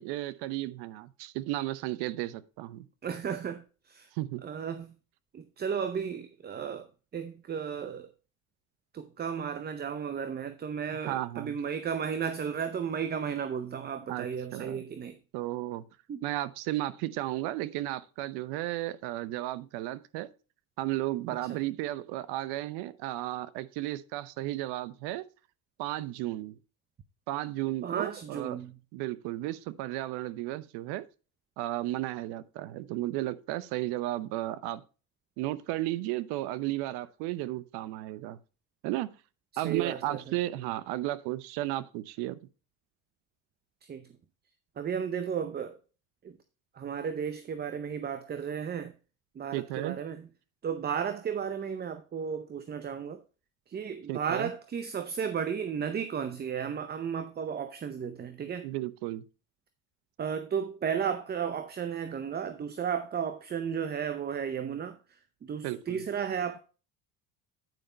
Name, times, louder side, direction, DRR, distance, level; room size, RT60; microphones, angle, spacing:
voice 1, 0.0-2.9 4.1-4.4 11.0-11.6 14.1-14.3 14.5-14.8 15.3-15.8 16.2-20.3 20.8-25.2 25.8-26.6 27.3-28.6 28.9-31.1 31.6-34.8 35.4-38.4 38.8-39.1 39.6-42.4 49.5-50.0 54.1-54.5 58.6-59.2 65.6-66.0, right 16 dB, 65° right, 0.8 m, -34 dB
voice 2, 3.0-4.1 4.4-4.9 5.3-8.1 8.9-15.2 16.1-16.2 21.5-21.6 27.8-28.7 39.5-40.2 43.8-44.1 44.8-45.8 46.2-46.4 46.7-48.9 49.3-50.3 50.6-53.2 53.7-58.7 60.2-66.6, right 7 dB, 25° right, 0.7 m, -34 dB
9.3 x 5.2 x 4.3 m
supercardioid pair, 110°, 42 cm